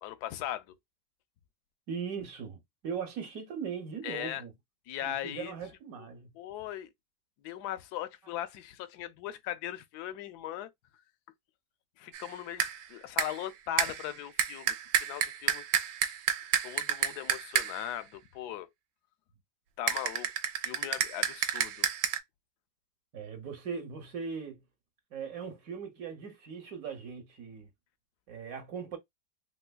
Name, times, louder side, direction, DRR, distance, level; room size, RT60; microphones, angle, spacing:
voice 1, 0.0-0.7 4.0-4.4 4.9-5.5 6.4-6.9 7.4-10.7 12.0-15.6 16.6-18.7 19.8-20.3 20.6-21.9, left 12 dB, 75° left, 1.0 m, -39 dB
voice 2, 1.9-4.5 5.0-6.3 23.1-24.6 25.1-27.7 28.3-29.0, right 6 dB, 60° right, 1.1 m, -39 dB
sound 1, 12.1-12.3 12.6-12.8 13.2-13.5 13.8-17.9 19.9-22.2, right 9 dB, 80° right, 1.2 m, -30 dB
3.3 x 3.2 x 2.2 m
omnidirectional pair, 1.9 m